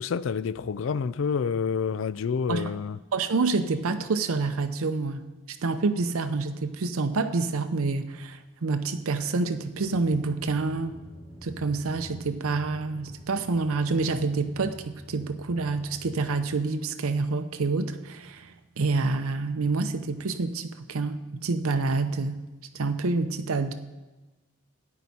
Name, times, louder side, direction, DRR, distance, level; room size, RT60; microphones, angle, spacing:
voice 1, 0.0-3.0, left 6 dB, 60° left, 0.3 m, -28 dB
voice 2, 3.1-5.2 5.6-11.0 11.4-18.5 18.8-22.4 22.7-23.7, right 3 dB, 80° right, 0.6 m, -27 dB
sound 1, 9.7-16.5, left 1 dB, 30° left, 4.3 m, -47 dB
13.5 x 9.3 x 4.2 m
head